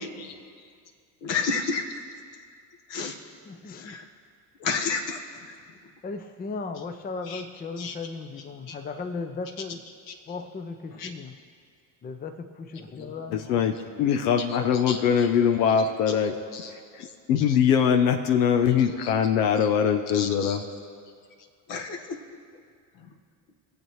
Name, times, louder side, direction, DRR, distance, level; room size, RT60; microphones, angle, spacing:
voice 1, 1.2-2.0 2.9-3.2 3.8-4.1 4.6-5.2 7.3-7.4 7.8-7.9 8.7-8.8 10.1-10.2 10.9-11.1 14.5-14.6 14.9-15.3 15.6-15.7 16.5-16.7 17.0-17.1 17.4-17.6 18.8-19.1 19.6-19.7 20.1-20.6 21.7-22.2 23.0-23.1, left 5 dB, 60° left, 3 dB, 1.6 m, -32 dB
voice 2, 3.4-4.0 6.0-9.9 10.3-11.4 12.0-14.0, left 4 dB, 20° left, 7 dB, 0.6 m, -37 dB
voice 3, 13.3-16.4 17.0-20.6, left 7 dB, 85° left, 5 dB, 0.8 m, -22 dB
23.0 x 7.7 x 3.2 m, 2.2 s
hypercardioid pair, 75°, 49 cm